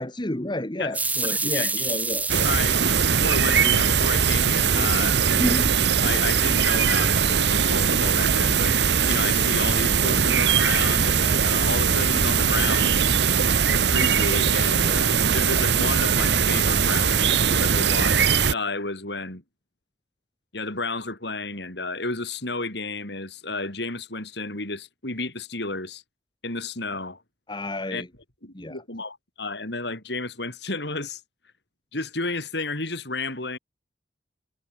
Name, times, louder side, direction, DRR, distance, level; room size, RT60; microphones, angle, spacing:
voice 1, 0.0-2.3 27.5-28.1 28.5-28.8, left 1 dB, 25° left, 1.7 m, -31 dB
sound 1, 0.9-3.4 3.8-6.0, right 2 dB, 10° right, 1.1 m, -28 dB
voice 2, 1.2-2.0 2.4-2.8 3.2-5.2 6.0-8.8 9.1-13.2 13.8-19.4 20.5-26.0 26.4-27.2 27.9-28.0 28.4-31.2 31.9-33.6, left 3 dB, 65° left, 5.7 m, -32 dB
sound 2, 2.3-18.5, right 6 dB, 65° right, 1.2 m, -21 dB
head